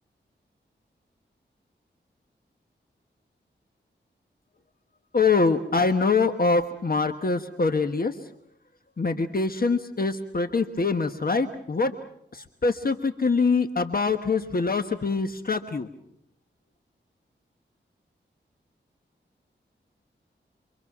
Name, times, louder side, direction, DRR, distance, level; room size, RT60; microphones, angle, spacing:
voice 1, 5.1-8.2 9.0-11.9 12.3-15.9, left 4 dB, 50° left, 7 dB, 1.3 m, -24 dB
27.5 x 24.5 x 6.1 m, 0.72 s
wide cardioid pair, 80°, 20 cm